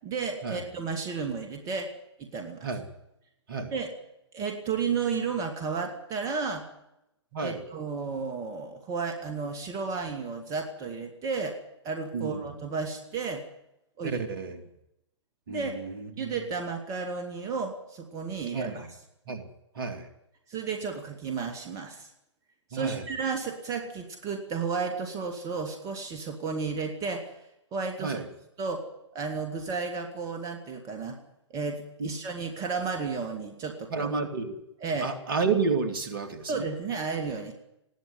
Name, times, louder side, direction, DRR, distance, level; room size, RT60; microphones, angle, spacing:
voice 1, 0.0-1.9 2.2-2.7 3.7-3.9 4.3-6.6 7.4-11.6 11.8-13.4 14.0-14.2 15.5-15.7 16.2-18.9 20.5-22.1 22.7-27.3 27.7-28.2 28.6-28.8 29.1-31.2 31.5-34.1 34.8-35.1 36.5-37.5, right 5 dB, 25° right, 5 dB, 2.7 m, -33 dB
voice 2, 12.1-12.5 14.0-14.6 15.5-16.1 18.5-18.8 19.3-19.5 19.7-20.1 22.7-23.0 28.0-28.3 32.0-32.1 33.9-34.6 35.0-36.6, right 4 dB, 50° right, 8 dB, 3.3 m, -30 dB
20.0 x 16.5 x 9.3 m, 0.84 s
figure-of-eight pair, 120°, 15 cm